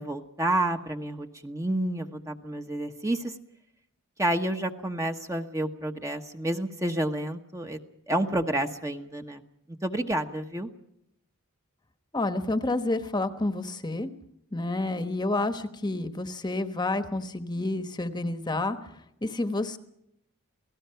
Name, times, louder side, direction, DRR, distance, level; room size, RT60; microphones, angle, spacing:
voice 1, 0.0-3.3 4.2-7.8 8.1-9.4 9.8-10.7, right 1 dB, 15° right, 5 dB, 1.1 m, -29 dB
voice 2, 12.1-14.1 14.5-18.8 19.2-19.8, left 2 dB, 20° left, 9 dB, 1.2 m, -29 dB
28.5 x 18.0 x 5.8 m, 0.77 s
head